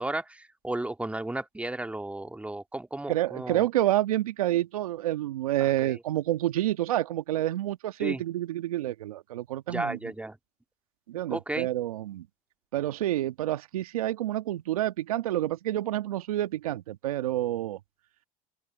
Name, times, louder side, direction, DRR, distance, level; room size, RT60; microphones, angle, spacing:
voice 1, 0.0-3.7 5.6-6.0 8.0-8.2 9.7-10.4 11.3-11.7, right 2 dB, 5° right, 1.9 m, -34 dB
voice 2, 3.1-10.0 11.1-12.3 12.7-17.8, right 14 dB, 80° right, 1.5 m, -28 dB
open air
hypercardioid pair, 80°, 18 cm